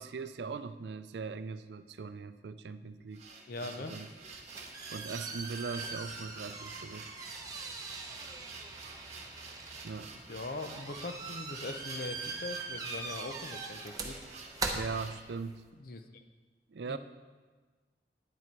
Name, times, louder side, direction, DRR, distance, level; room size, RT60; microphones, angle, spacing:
voice 1, 0.0-3.3 3.8-4.1 4.9-7.1 9.8-10.1 14.7-15.6 16.7-17.0, right 4 dB, 70° right, 12 dB, 0.4 m, -40 dB
sound 1, 3.0-15.2, right 4 dB, 40° right, 1.1 m, -49 dB
voice 2, 3.5-3.9 10.1-14.2 15.8-16.2 16.9-17.0, left 2 dB, 55° left, 7 dB, 0.7 m, -41 dB
sound 2, 4.2-15.7, right 3 dB, 20° right, 0.8 m, -42 dB
9.6 x 8.6 x 4.6 m, 1.3 s
head